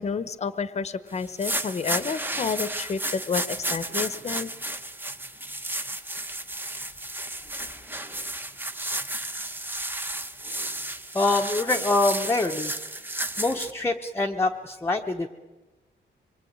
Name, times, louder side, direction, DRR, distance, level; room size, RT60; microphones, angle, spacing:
voice 1, 0.0-4.5, left 5 dB, 35° left, 14 dB, 1.1 m, -30 dB
sound 1, 1.2-13.7, right 1 dB, 10° right, 1.2 m, -32 dB
voice 2, 11.1-12.8 13.4-15.3, left 2 dB, 10° left, 2 dB, 1.1 m, -25 dB
26.0 x 23.0 x 8.8 m, 1.2 s
wide cardioid pair, 170°, 19 cm